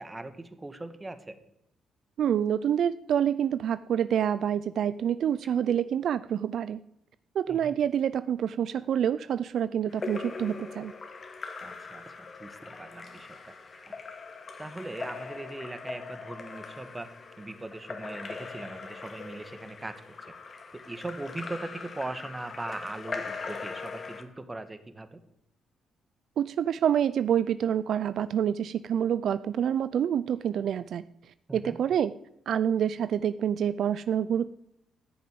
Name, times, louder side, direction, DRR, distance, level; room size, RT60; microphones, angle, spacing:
voice 1, 0.0-1.4 7.5-7.7 11.6-14.0 14.6-20.3 20.7-25.2 31.5-31.8, right 2 dB, 15° right, 11 dB, 1.5 m, -40 dB
voice 2, 2.2-6.8 7.3-10.9 26.4-31.0 31.5-32.1 32.5-34.5, right 9 dB, 65° right, 15 dB, 0.4 m, -27 dB
Splash splatter / Drip / Trickle dribble, 9.9-24.2, left 4 dB, 40° left, 1.9 m, -41 dB
14.5 x 6.8 x 9.5 m, 0.80 s
cardioid pair, 90°, 0 cm